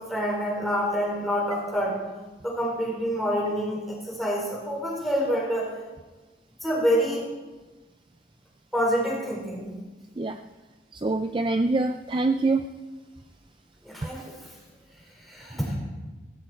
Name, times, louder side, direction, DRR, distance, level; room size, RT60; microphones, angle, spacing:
voice 1, 0.0-2.0 2.4-5.7 6.6-7.2 8.7-9.8 13.8-14.5 15.2-15.8, equal, ahead, -4 dB, 4.5 m, -27 dB
voice 2, 11.0-12.7, right 3 dB, 25° right, 8 dB, 0.4 m, -24 dB
17.5 x 15.5 x 4.5 m, 1.2 s
head